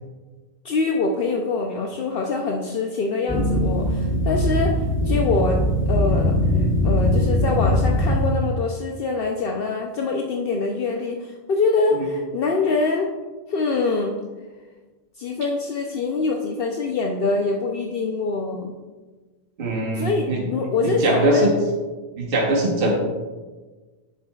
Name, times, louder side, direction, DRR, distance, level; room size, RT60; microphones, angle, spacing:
voice 1, 0.6-5.6 5.9-13.1 13.5-14.2 15.2-18.7 19.9-21.5 22.8-22.9, left 3 dB, 65° left, 1 dB, 0.8 m, -24 dB
sound 1, 3.3-8.3, equal, 15° left, 0.7 m, -21 dB
voice 2, 19.6-20.4 20.8-21.5 22.2-22.9, right 1 dB, 60° right, -1 dB, 1.2 m, -21 dB
10.0 x 7.5 x 2.3 m, 1.3 s
omnidirectional pair, 1.1 m